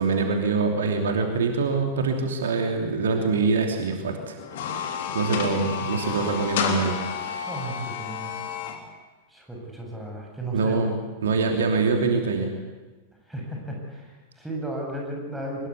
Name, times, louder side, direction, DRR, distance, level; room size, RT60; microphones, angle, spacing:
voice 1, 0.0-4.4 4.8-7.0 10.5-11.0 11.2-12.5, right 4 dB, 65° right, 4 dB, 3.0 m, -24 dB
sound 1, 4.4-8.8, left 7 dB, 55° left, 3.3 m, -30 dB
voice 2, 7.4-8.4 9.3-11.0 13.3-15.7, right 1 dB, 5° right, -1 dB, 7.7 m, -34 dB
24.0 x 21.5 x 8.4 m, 1.2 s
figure-of-eight pair, 90°, 0 cm